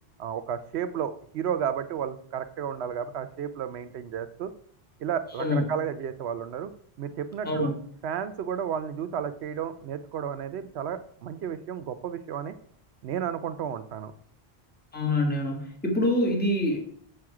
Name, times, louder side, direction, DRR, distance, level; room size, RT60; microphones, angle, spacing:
voice 1, 0.2-4.5 5.0-6.7 7.0-7.7 8.0-12.5 13.0-14.1, right 8 dB, 80° right, 12 dB, 0.9 m, -32 dB
voice 2, 14.9-16.8, left 1 dB, 10° left, 1 dB, 1.4 m, -25 dB
7.6 x 6.6 x 4.8 m, 0.63 s
omnidirectional pair, 1.1 m